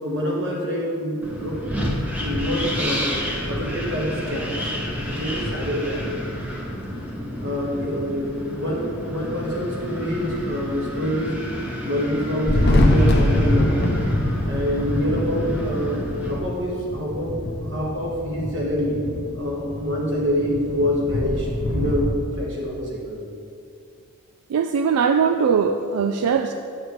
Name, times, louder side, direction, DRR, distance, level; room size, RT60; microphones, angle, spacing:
voice 1, 0.0-1.7 2.2-3.2 3.5-4.6 5.1-6.1 7.4-11.4 11.8-13.9 14.4-17.4 17.7-19.0 19.3-23.2, equal, 55° right, -3 dB, 1.5 m, -26 dB
Wind, 1.2-16.4, equal, 5° right, 0.7 m, -30 dB
Thunder, 12.3-22.1, left 1 dB, 45° left, 0.6 m, -24 dB
voice 2, 24.5-26.5, right 6 dB, 85° right, 7 dB, 0.3 m, -20 dB
9.2 x 6.4 x 3.1 m, 2.4 s
head